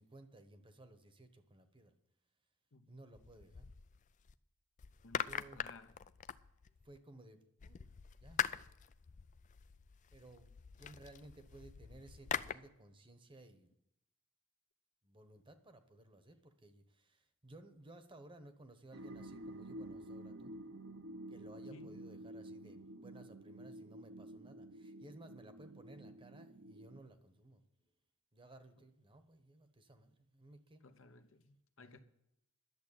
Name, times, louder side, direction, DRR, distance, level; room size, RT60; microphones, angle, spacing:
voice 1, 0.0-1.9 2.9-3.7 5.2-5.6 6.8-7.8 8.2-8.4 10.1-10.5 10.8-13.7 15.0-20.5 21.3-27.6 28.3-30.8 31.8-32.0, right 1 dB, 25° right, 9 dB, 1.0 m, -58 dB
sound 1, 3.1-4.3 4.8-7.0 7.6-12.5, left 8 dB, 35° left, 0.4 m, -43 dB
voice 2, 5.0-5.9 21.7-22.0 30.8-32.0, left 3 dB, 65° left, 7 dB, 0.9 m, -58 dB
sound 2, 18.9-27.0, right 1 dB, 65° right, 0.8 m, -50 dB
11.0 x 7.5 x 8.9 m, 0.81 s
head